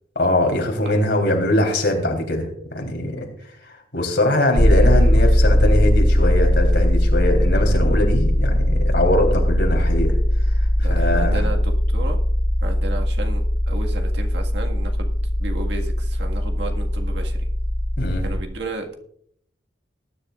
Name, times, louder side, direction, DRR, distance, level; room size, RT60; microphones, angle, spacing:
voice 1, 0.1-3.3 3.6-10.1 10.5-11.5 18.0-18.2, left 1 dB, 70° left, 2 dB, 3.3 m, -22 dB
sound 1, 4.5-18.4, equal, 55° left, 1.4 m, -19 dB
voice 2, 10.8-12.2 12.6-15.1 15.4-17.4 18.2-18.9, right 2 dB, 70° right, 3 dB, 1.7 m, -33 dB
19.5 x 10.5 x 2.4 m, 0.67 s
head